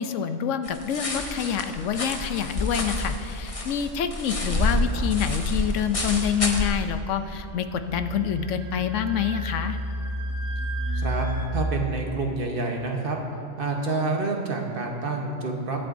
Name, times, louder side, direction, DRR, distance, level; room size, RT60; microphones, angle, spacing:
voice 1, 0.0-9.8, left 8 dB, 85° left, 9 dB, 1.0 m, -27 dB
sound 1, 0.6-6.7, left 1 dB, 30° left, 0.9 m, -28 dB
sound 2, 7.1-11.5, equal, 70° right, 1.6 m, -31 dB
voice 2, 10.9-11.3 11.5-13.2 13.6-15.9, right 3 dB, 50° right, 1 dB, 1.2 m, -28 dB
22.0 x 7.8 x 2.6 m, 2.5 s
omnidirectional pair, 1.2 m